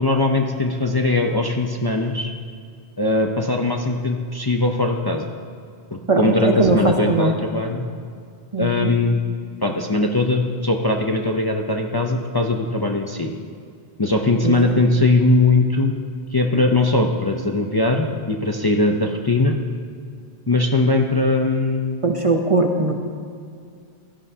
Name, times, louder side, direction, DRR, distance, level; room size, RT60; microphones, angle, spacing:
voice 1, 0.0-2.3 3.0-5.2 6.2-7.8 8.6-9.2 9.6-13.3 14.0-15.9 16.3-19.6 20.5-22.1, left 2 dB, 25° left, 2 dB, 0.6 m, -20 dB
voice 2, 6.1-7.3 8.5-9.0 14.4-14.8 22.0-22.9, right 3 dB, 35° right, 3 dB, 0.8 m, -20 dB
16.5 x 12.5 x 2.8 m, 2.3 s
omnidirectional pair, 1.0 m